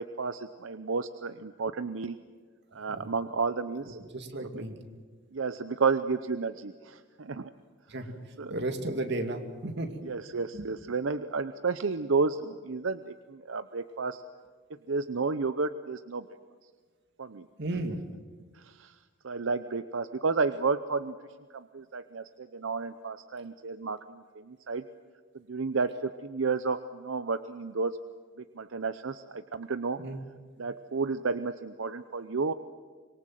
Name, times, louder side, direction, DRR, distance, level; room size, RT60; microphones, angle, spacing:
voice 1, 0.0-2.2 2.7-4.0 5.3-7.5 8.4-8.5 10.0-14.3 14.9-16.3 17.2-17.5 18.5-18.9 19.2-21.1 21.5-24.9 25.5-27.9 28.6-30.0 30.6-32.5, right 4 dB, 85° right, 11 dB, 0.7 m, -31 dB
voice 2, 3.9-4.8 7.9-8.1 8.5-10.0 10.5-10.7 17.6-18.0 30.0-30.2, right 2 dB, 60° right, 5 dB, 2.4 m, -34 dB
25.0 x 23.0 x 7.7 m, 1.5 s
head